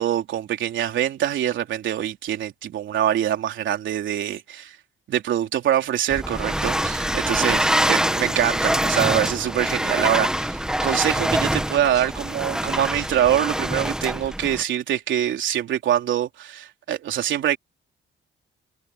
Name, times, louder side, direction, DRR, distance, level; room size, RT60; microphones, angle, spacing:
voice 1, 0.0-4.8 5.1-17.6, right 11 dB, 75° right, 3.5 m, -24 dB
sound 1, 6.1-14.6, right 1 dB, 5° right, 1.5 m, -24 dB
cardioid pair, 90°, 20 cm